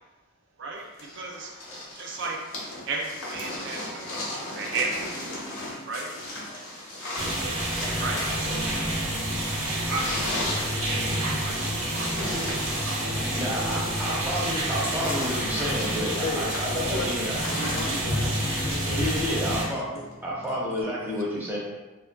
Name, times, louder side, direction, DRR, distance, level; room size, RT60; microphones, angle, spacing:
voice 1, 0.6-1.5 1.9-2.4 2.9-5.5 5.9-6.1 7.0-7.6 8.0-9.0 9.9-10.1 10.7-13.0 13.5-13.8, right 3 dB, 55° right, 0 dB, 0.4 m, -35 dB
sound 1, 1.0-19.1 20.1-20.2, left 1 dB, 85° left, 0.8 m, -37 dB
sound 2, 7.2-19.6, right 1 dB, 85° right, 0.8 m, -28 dB
sound 3, 9.2-20.8, left 1 dB, 20° left, 0.7 m, -50 dB
voice 2, 13.3-17.4 19.0-19.8 20.2-21.6, equal, 10° right, -6 dB, 0.5 m, -30 dB
voice 3, 16.2-20.1, left 2 dB, 65° left, 2 dB, 0.4 m, -36 dB
3.0 x 2.3 x 2.2 m, 1.2 s
head